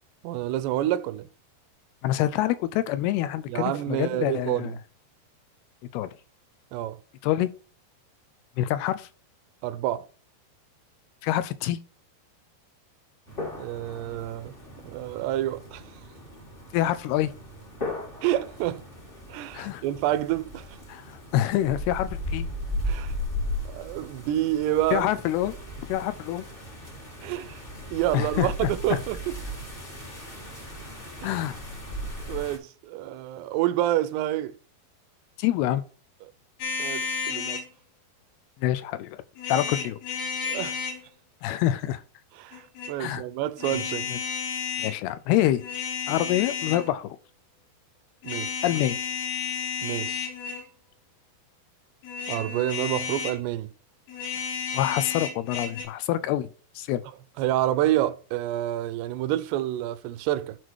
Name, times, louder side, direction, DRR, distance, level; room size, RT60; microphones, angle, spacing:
voice 1, 0.2-1.3 3.5-4.7 6.7-7.0 9.6-10.1 13.6-14.6 14.9-15.8 18.2-18.8 19.3-20.7 22.8-23.1 23.7-25.1 27.2-27.6 27.9-29.4 31.2-31.4 32.3-34.6 36.2-36.3 36.8-37.6 40.4-40.8 42.4-44.1 48.2-48.6 49.8-50.3 52.3-53.7 57.4-60.6, right 13 dB, 90° right, 2.7 m, -28 dB
voice 2, 2.0-4.7 5.9-6.1 7.2-7.5 8.6-9.1 11.2-11.8 16.7-17.3 19.5-19.8 20.9-22.5 24.9-26.4 28.1-28.7 31.2-31.6 35.4-35.8 38.6-39.2 39.5-40.0 41.4-42.0 43.0-43.2 44.1-44.2 44.8-45.6 46.1-47.2 48.6-49.0 54.7-56.5 56.8-57.0, left 13 dB, 80° left, 2.5 m, -26 dB
sound 1, 13.3-32.6, left 1 dB, 35° left, 0.8 m, -37 dB
sound 2, 36.6-37.7 39.4-41.0 42.5-42.9 43.6-45.0 45.5-46.9 48.2-50.7 52.0-53.4 54.1-55.8, left 6 dB, 65° left, 5.4 m, -32 dB
10.5 x 4.2 x 4.6 m
omnidirectional pair, 4.7 m